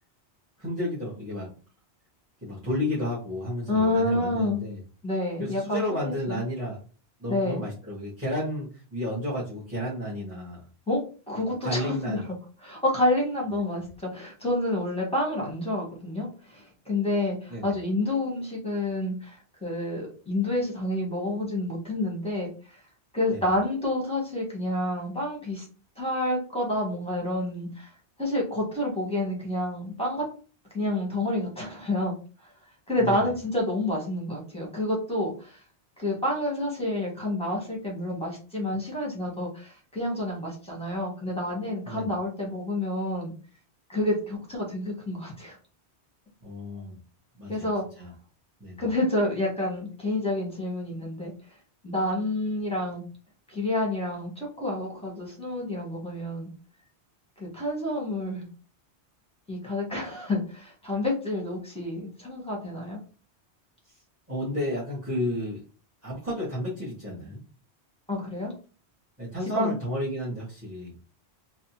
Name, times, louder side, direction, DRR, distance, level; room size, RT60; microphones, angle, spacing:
voice 1, 0.6-1.5 2.4-4.8 5.4-6.8 7.2-10.6 11.6-12.2 17.5-17.7 23.3-23.4 33.0-33.2 41.8-42.1 46.4-47.0 47.4-47.7 48.0-48.1 48.6-48.8 63.9-64.0 64.3-65.6 66.0-67.4 69.2-70.9, left 1 dB, 10° right, -7 dB, 1.9 m, -32 dB
voice 2, 3.7-4.6 5.0-6.4 7.3-7.6 10.9-11.0 11.3-12.2 12.6-22.5 23.1-25.7 26.0-27.9 28.2-30.3 30.7-32.2 32.9-35.6 36.0-43.3 43.9-45.6 47.5-47.8 48.8-51.3 51.8-53.0 53.5-56.5 57.4-58.5 59.5-63.0 68.1-68.5 69.6-69.8, left 1 dB, 5° left, -3 dB, 1.9 m, -29 dB
4.1 x 3.2 x 2.9 m, 0.37 s
omnidirectional pair, 1.1 m